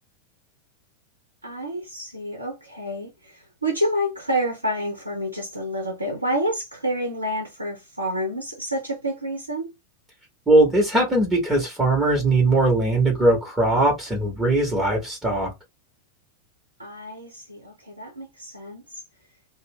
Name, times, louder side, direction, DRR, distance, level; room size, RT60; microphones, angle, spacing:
voice 1, 1.4-9.7 16.8-19.0, equal, 80° right, 0.6 m, -29 dB
voice 2, 10.5-15.5, right 2 dB, 10° right, 1.0 m, -20 dB
2.4 x 2.1 x 3.4 m
figure-of-eight pair, 90°, 0 cm